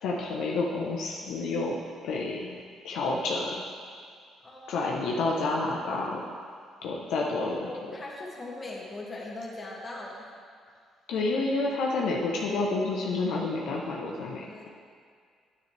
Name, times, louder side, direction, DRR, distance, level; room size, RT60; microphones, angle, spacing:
voice 1, 0.0-1.8 2.0-2.6 2.8-3.6 4.7-6.2 6.8-7.7 11.1-14.4, left 3 dB, 75° left, -2 dB, 0.8 m, -29 dB
voice 2, 4.4-5.1 7.4-10.3 14.4-14.7, left 2 dB, 30° left, -3 dB, 2.1 m, -40 dB
9.8 x 9.1 x 3.3 m, 2.1 s
supercardioid pair, 65°, 0 cm